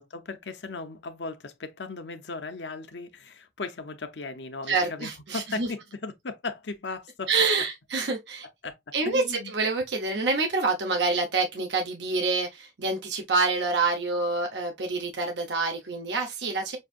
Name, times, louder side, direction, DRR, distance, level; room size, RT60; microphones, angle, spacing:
voice 1, 0.0-7.3 8.6-8.8 9.0-9.5, left 3 dB, 85° left, 0.9 m, -37 dB
voice 2, 4.7-5.7 7.3-8.5 8.9-16.8, right 3 dB, 80° right, 0.9 m, -27 dB
6.4 x 2.7 x 2.5 m
head